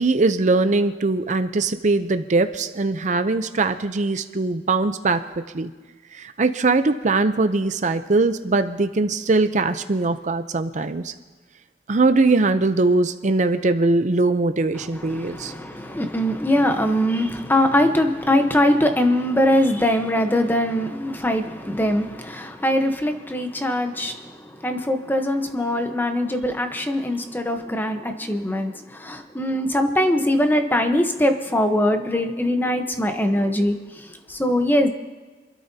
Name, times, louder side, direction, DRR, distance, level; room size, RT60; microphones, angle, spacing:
voice 1, 0.0-5.3 5.5-5.7 6.1-11.1 11.9-15.5, right 3 dB, 45° right, 10 dB, 0.6 m, -21 dB
voice 2, 14.8-34.9, left 1 dB, 10° left, 6 dB, 0.9 m, -22 dB
27.5 x 12.5 x 2.8 m, 1.4 s
head